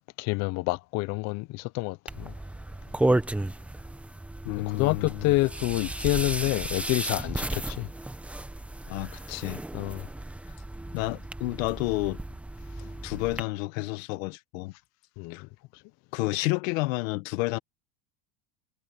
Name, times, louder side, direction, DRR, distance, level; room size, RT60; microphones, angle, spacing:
voice 1, 0.2-2.3 4.8-7.9 9.7-10.1 15.2-15.4, left 21 dB, 45° left, 0.5 m, -28 dB
sound 1, 2.1-13.4, right 1 dB, 5° right, 0.8 m, -33 dB
voice 2, 4.4-5.3 8.9-9.6 10.9-12.2 13.0-14.7 15.3-15.4 16.1-17.6, left 21 dB, 75° left, 1.3 m, -30 dB
cardioid pair, 155°, 40 cm